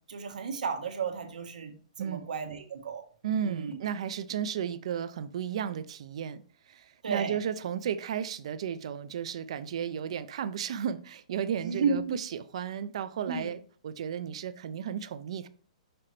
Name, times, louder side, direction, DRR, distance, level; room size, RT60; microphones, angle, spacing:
voice 1, 0.1-3.0 3.4-3.8 7.0-7.4 11.5-12.2 13.3-13.5, right 5 dB, 85° right, 1.5 m, -33 dB
voice 2, 2.0-2.3 3.2-15.5, right 8 dB, 50° right, 0.5 m, -34 dB
5.9 x 5.5 x 3.3 m
hypercardioid pair, 170°, 4 cm